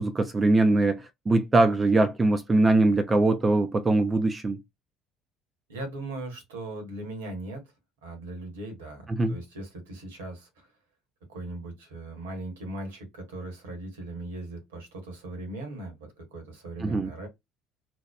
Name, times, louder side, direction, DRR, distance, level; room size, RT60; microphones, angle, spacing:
voice 1, 0.0-4.6 9.1-9.4 16.8-17.1, right 2 dB, 25° right, 0.4 m, -22 dB
voice 2, 5.7-7.6 8.0-10.7 11.3-17.3, right 2 dB, 75° right, 1.0 m, -39 dB
2.9 x 2.1 x 2.2 m
figure-of-eight pair, 60°, 0 cm